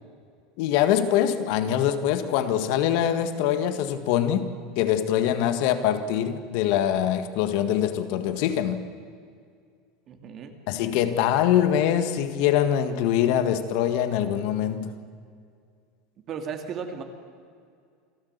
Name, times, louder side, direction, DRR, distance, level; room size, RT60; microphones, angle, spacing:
voice 1, 0.6-8.8 10.7-15.0, left 10 dB, 65° left, 9 dB, 1.7 m, -24 dB
voice 2, 10.1-10.6 16.3-17.0, right 6 dB, 40° right, 5 dB, 2.7 m, -35 dB
27.5 x 13.5 x 8.3 m, 2.2 s
supercardioid pair, 115°, 0 cm